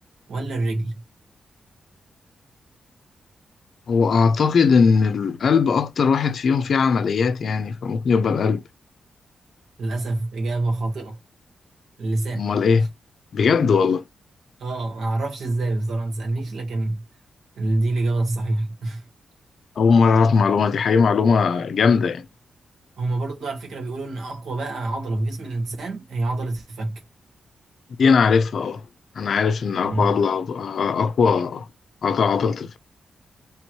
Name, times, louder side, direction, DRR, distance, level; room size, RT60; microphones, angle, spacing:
voice 1, 0.3-1.0 9.8-11.2 12.0-12.4 12.7-12.9 14.6-17.0 17.6-19.1 23.0-27.0 29.8-30.2, right 2 dB, 85° right, 1.8 m, -26 dB
voice 2, 3.9-8.6 12.4-12.9 13.3-14.0 19.8-22.3 28.0-28.8 29.2-31.7 32.0-32.8, left 5 dB, 55° left, 0.5 m, -19 dB
3.5 x 3.0 x 4.4 m
wide cardioid pair, 155°, 0 cm